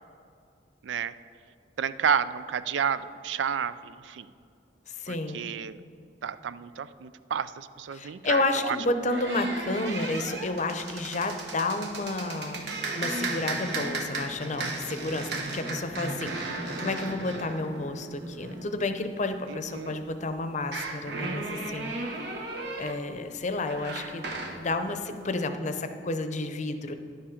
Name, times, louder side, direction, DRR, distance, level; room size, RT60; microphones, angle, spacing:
voice 1, 0.8-1.1 1.8-4.3 5.1-5.8 6.2-8.8 19.5-20.0, right 7 dB, 90° right, 14 dB, 0.4 m, -31 dB
voice 2, 4.9-5.5 7.9-21.9 22.8-24.2 24.6-26.9, left 2 dB, 40° left, 9 dB, 0.7 m, -31 dB
sound 1, 9.0-19.5 20.6-24.6, right 2 dB, 65° right, 1.2 m, -35 dB
11.0 x 8.7 x 4.9 m, 2.3 s
head